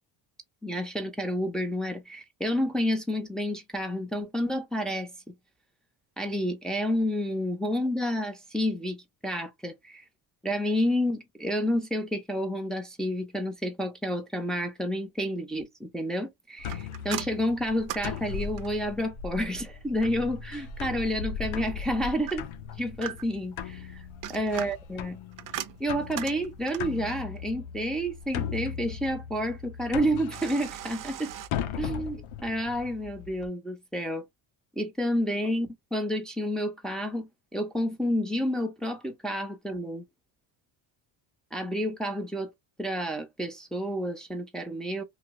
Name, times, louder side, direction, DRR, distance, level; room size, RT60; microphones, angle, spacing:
voice 1, 0.6-5.3 6.2-10.0 10.4-22.5 22.8-24.0 24.3-25.2 25.8-31.3 31.8-34.3 34.8-40.0 41.5-42.5 42.8-45.0, equal, ahead, 0.7 m, -30 dB
sound 1, 16.6-33.5, left 7 dB, 85° left, 0.7 m, -38 dB
sound 2, 16.7-18.9 22.3-23.5 24.0-27.0 30.3-31.5, right 11 dB, 45° right, 0.5 m, -39 dB
2.9 x 2.3 x 2.9 m
cardioid pair, 95°, 48 cm